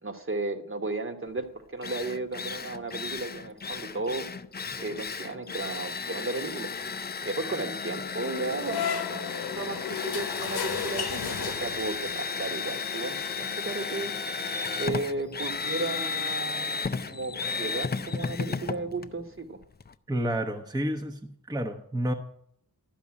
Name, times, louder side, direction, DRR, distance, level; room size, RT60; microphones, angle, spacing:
voice 1, 0.0-4.2 4.8-6.7 7.2-14.1 14.8-19.6, right 3 dB, 35° right, 5 dB, 1.3 m, -34 dB
Drill, 1.4-1.5 1.8-19.9, left 5 dB, 25° left, 0.5 m, -34 dB
sound 1, 8.2-12.1, left 7 dB, 85° left, 0.9 m, -34 dB
voice 2, 20.1-22.1, right 1 dB, 10° right, 3 dB, 0.9 m, -30 dB
12.0 x 5.3 x 8.6 m, 0.70 s
wide cardioid pair, 85°, 37 cm